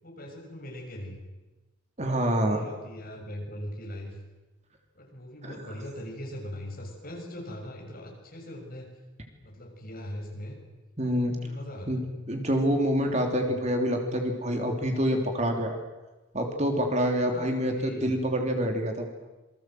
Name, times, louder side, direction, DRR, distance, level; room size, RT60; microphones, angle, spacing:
voice 1, 0.0-1.2 2.3-4.2 4.9-8.9 9.4-10.6 11.4-12.0 17.2-18.1, equal, 45° left, 1 dB, 6.8 m, -40 dB
voice 2, 2.0-2.7 5.5-5.6 11.0-11.4 11.9-15.8 16.3-19.1, equal, 35° right, 3 dB, 3.3 m, -27 dB
27.5 x 22.0 x 7.9 m, 1.1 s
head